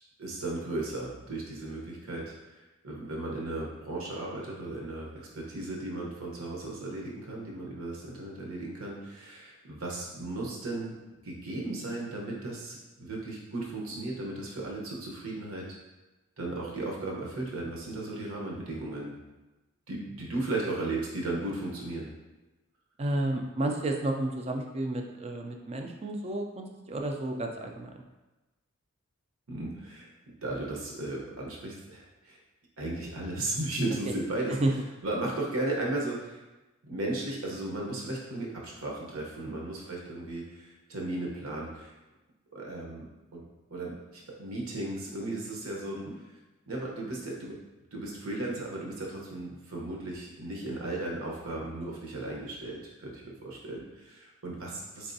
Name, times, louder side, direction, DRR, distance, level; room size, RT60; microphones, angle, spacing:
voice 1, 0.2-10.9 11.2-15.8 16.4-19.2 19.9-22.1 29.5-30.1 30.4-32.4 32.8-34.6 35.0-36.4 36.8-41.9 42.5-43.4 43.7-46.1 46.7-47.6 47.9-55.1, right 2 dB, 75° right, -2 dB, 0.9 m, -35 dB
voice 2, 23.0-27.9 34.5-34.7 39.5-39.6 46.1-46.2, right 1 dB, 30° right, 3 dB, 0.3 m, -31 dB
3.9 x 3.4 x 2.6 m, 1.1 s
head